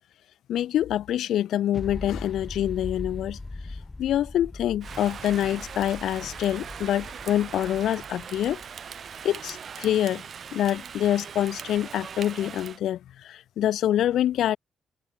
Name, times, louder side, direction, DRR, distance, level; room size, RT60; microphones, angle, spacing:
voice 1, 0.5-3.4 4.0-8.6 9.2-10.2 10.5-14.6, left 11 dB, 75° left, 5.2 m, -26 dB
sound 1, 1.7-9.3, left 2 dB, 20° left, 4.9 m, -40 dB
Rain, 4.8-12.8, right 7 dB, 50° right, 5.6 m, -40 dB
cardioid pair, 90°, 0 cm